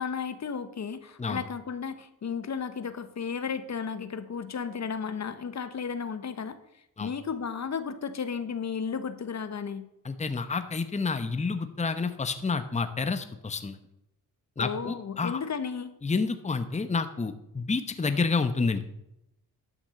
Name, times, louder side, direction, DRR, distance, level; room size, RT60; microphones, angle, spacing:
voice 1, 0.0-6.6 7.0-9.8 14.6-15.9, left 6 dB, 45° left, 11 dB, 1.1 m, -34 dB
voice 2, 10.0-13.8 14.6-15.4 16.0-18.8, left 4 dB, 20° left, 10 dB, 0.9 m, -29 dB
11.5 x 5.9 x 6.9 m, 0.83 s
cardioid pair, 65°, 39 cm